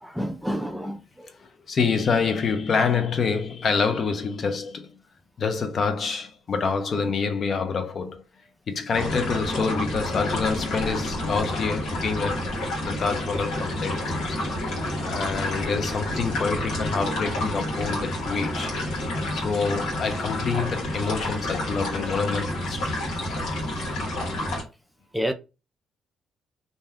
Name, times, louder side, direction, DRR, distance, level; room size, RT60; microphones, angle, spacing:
voice 1, 0.0-1.3 7.0-7.1 18.4-18.5 18.8-19.0 25.1-25.3, equal, 5° right, 0.4 m, -30 dB
voice 2, 1.4-4.9 5.4-8.2 8.7-12.5 12.8-14.4 14.7-14.8 15.1-18.7 19.3-22.9, left 5 dB, 50° left, 0.6 m, -27 dB
sound 1, 8.9-24.6, left 1 dB, 80° left, 1.2 m, -29 dB
2.6 x 2.2 x 3.4 m
cardioid pair, 90°, 0 cm